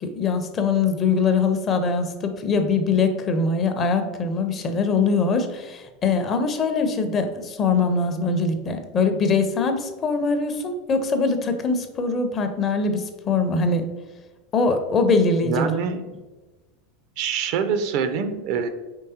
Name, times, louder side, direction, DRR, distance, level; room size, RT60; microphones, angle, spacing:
voice 1, 0.0-13.9 14.5-15.7, left 4 dB, 30° left, 7 dB, 0.5 m, -22 dB
voice 2, 15.4-16.0 17.2-18.7, right 6 dB, 50° right, 8 dB, 0.4 m, -25 dB
4.5 x 3.2 x 2.8 m, 1.2 s
figure-of-eight pair, 80°, 0 cm